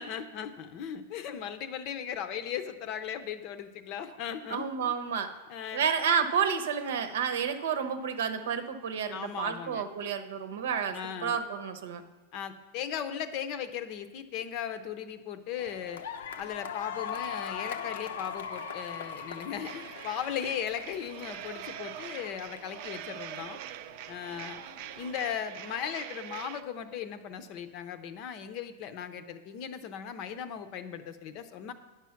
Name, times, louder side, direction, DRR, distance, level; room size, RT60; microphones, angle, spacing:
voice 1, 0.0-4.9 5.5-5.9 9.1-9.9 10.9-11.4 12.3-16.0 16.4-23.6 24.1-24.6 25.0-31.7, left 8 dB, 35° left, 10 dB, 0.6 m, -37 dB
voice 2, 4.5-5.3 5.7-12.0, right 7 dB, 75° right, 9 dB, 0.9 m, -30 dB
sound 1, 15.6-25.3, left 7 dB, 85° left, 0.7 m, -41 dB
sound 2, 19.6-26.6, right 12 dB, 45° right, 0.4 m, -43 dB
9.9 x 6.2 x 5.8 m, 1.3 s
supercardioid pair, 160°, 0 cm